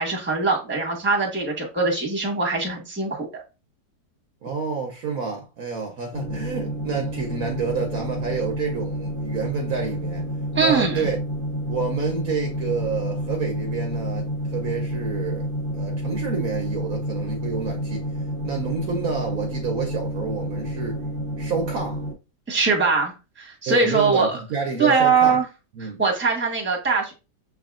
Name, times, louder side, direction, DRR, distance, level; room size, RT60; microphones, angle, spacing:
voice 1, 0.0-3.4 10.5-11.1 22.5-23.1 23.4-24.4 24.8-25.4 25.8-27.1, right 4 dB, 10° right, 1.1 m, -22 dB
voice 2, 4.4-10.3 10.6-11.2 11.7-15.5 15.7-18.1 18.4-21.0 21.4-22.0 23.7-25.4 25.8-26.0, right 5 dB, 65° right, 1.1 m, -29 dB
sound 1, 6.1-22.1, equal, 35° left, 1.2 m, -29 dB
6.4 x 3.4 x 2.4 m
omnidirectional pair, 1.8 m